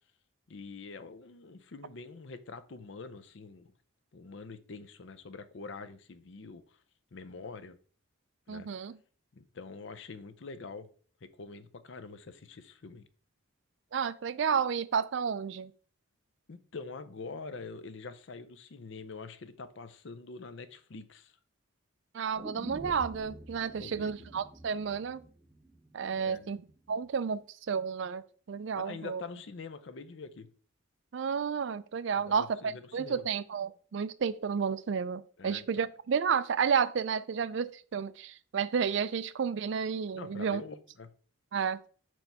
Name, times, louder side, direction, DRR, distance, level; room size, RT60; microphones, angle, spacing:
voice 1, 0.5-3.7 4.1-6.8 7.1-7.8 8.5-8.7 9.3-10.9 11.2-13.1 16.5-21.3 23.8-24.1 26.2-26.5 28.8-30.5 32.1-33.2 35.4-35.6 40.1-41.1, left 4 dB, 60° left, 0.6 m, -45 dB
voice 2, 8.5-9.0 13.9-15.7 22.1-25.2 25.9-26.6 26.9-27.4 27.7-29.2 31.1-40.6 41.5-41.8, right 6 dB, 60° right, 0.4 m, -31 dB
sound 1, 22.3-26.4 26.7-26.8, right 1 dB, 5° right, 0.6 m, -47 dB
4.5 x 4.5 x 5.3 m
head